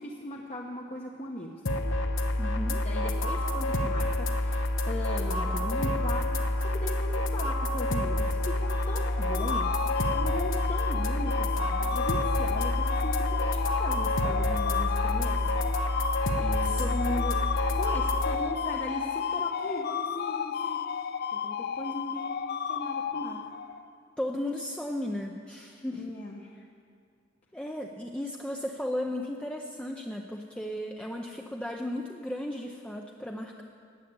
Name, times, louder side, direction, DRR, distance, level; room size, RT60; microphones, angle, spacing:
voice 1, 0.0-1.5 2.7-15.5 16.4-17.4 17.8-21.0 21.3-22.4 22.7-23.4 25.9-26.5, left 1 dB, 35° left, -1 dB, 1.0 m, -38 dB
sound 1, 1.7-18.4, left 1 dB, 90° left, 1.0 m, -28 dB
voice 2, 2.4-2.8 16.6-16.8 24.2-26.1 27.5-33.6, left 1 dB, 5° left, 1 dB, 0.6 m, -35 dB
sound 2, 8.6-23.9, left 7 dB, 55° left, 0.5 m, -32 dB
13.5 x 8.2 x 9.5 m, 2.3 s
head